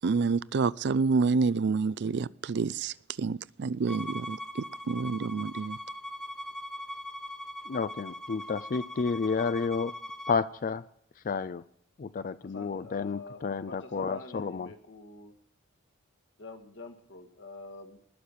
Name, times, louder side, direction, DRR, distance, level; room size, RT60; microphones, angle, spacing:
voice 1, 0.0-5.8, right 4 dB, 55° right, 0.4 m, -28 dB
Bowed string instrument, 3.9-10.4, left 1 dB, 5° left, 1.0 m, -41 dB
voice 2, 7.7-9.9 10.3-10.8 11.2-11.6 12.0-14.7, left 5 dB, 40° left, 0.4 m, -31 dB
voice 3, 12.4-15.3 16.4-18.0, left 3 dB, 60° left, 1.8 m, -46 dB
20.0 x 6.7 x 5.6 m
head